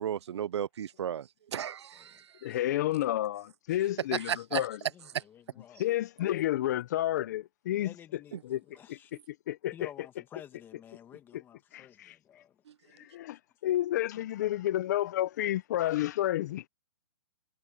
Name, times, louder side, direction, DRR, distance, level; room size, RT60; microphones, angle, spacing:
voice 1, 0.0-2.5 4.1-4.6 5.1-5.2 8.3-8.4 12.7-12.8, right 9 dB, 85° right, 0.5 m, -34 dB
voice 2, 2.4-4.8 5.8-7.9 8.4-8.6 8.9-9.0 9.5-9.9 11.7-12.2 13.0-16.6, left 13 dB, 40° left, 0.5 m, -30 dB
voice 3, 4.9-5.8 7.7-9.1 9.7-12.6, left 10 dB, 15° left, 1.6 m, -52 dB
hypercardioid pair, 160°, 14 cm